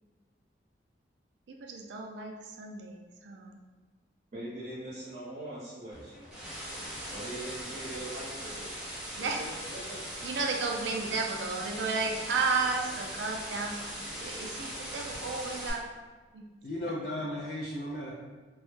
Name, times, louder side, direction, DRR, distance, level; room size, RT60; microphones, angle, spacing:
voice 1, 1.5-3.6 9.2-9.4 10.2-13.9 14.1-15.9 16.3-16.4, right 4 dB, 75° right, 2 dB, 0.4 m, -33 dB
voice 2, 4.3-6.2 7.1-8.7 9.4-9.5 9.9-10.0, right 1 dB, 35° right, -9 dB, 0.8 m, -41 dB
sound 1, 5.9-15.7, equal, 5° right, 0.5 m, -40 dB
voice 3, 16.6-18.1, left 1 dB, 55° left, -4 dB, 0.3 m, -35 dB
2.2 x 2.0 x 3.1 m, 1.3 s
head